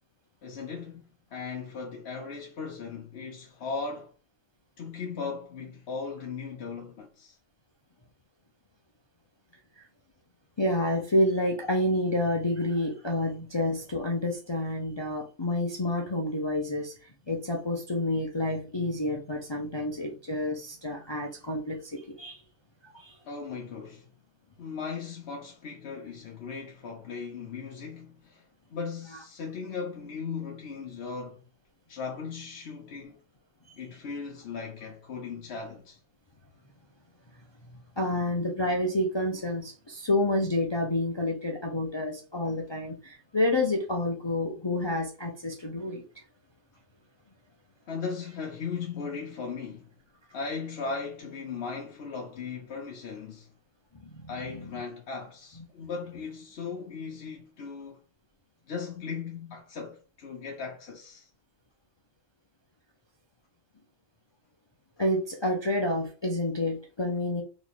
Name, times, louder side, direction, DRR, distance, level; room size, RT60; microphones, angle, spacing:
voice 1, 0.4-4.1 4.8-7.4 13.3-13.5 23.2-24.1 24.6-28.4 28.7-31.4 31.9-33.2 33.8-36.0 47.9-49.9 50.3-53.5 54.3-58.0 58.7-61.3, left 5 dB, 60° left, 0.8 m, -37 dB
voice 2, 10.6-22.4 22.8-23.2 33.7-33.8 38.0-46.2 53.9-54.7 65.0-67.4, left 1 dB, 45° left, 0.3 m, -29 dB
3.1 x 3.0 x 4.1 m
omnidirectional pair, 1.3 m